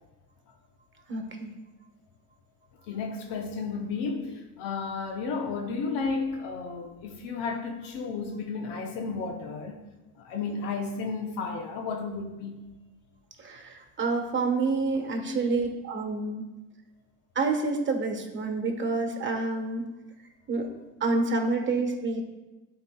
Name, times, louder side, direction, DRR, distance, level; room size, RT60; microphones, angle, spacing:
voice 1, 1.1-1.5 13.4-16.4 17.3-19.8 20.5-20.7 21.0-22.2, right 3 dB, 30° right, 3 dB, 1.3 m, -28 dB
voice 2, 2.7-9.8 10.1-12.7 15.2-15.4, left 4 dB, 80° left, 3 dB, 0.9 m, -33 dB
11.5 x 4.7 x 2.3 m, 1.1 s
supercardioid pair, 100°, 40 cm